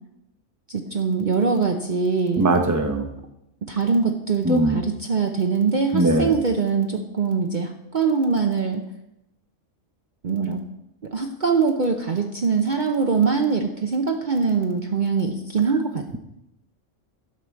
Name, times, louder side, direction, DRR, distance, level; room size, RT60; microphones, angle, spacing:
voice 1, 0.7-2.5 3.7-8.8 10.2-10.6 11.0-16.2, right 5 dB, 45° right, 3 dB, 0.8 m, -23 dB
voice 2, 2.4-3.1 4.4-4.8 5.9-6.3, right 2 dB, 15° right, 6 dB, 0.8 m, -20 dB
11.5 x 4.8 x 7.0 m, 0.86 s
omnidirectional pair, 1.3 m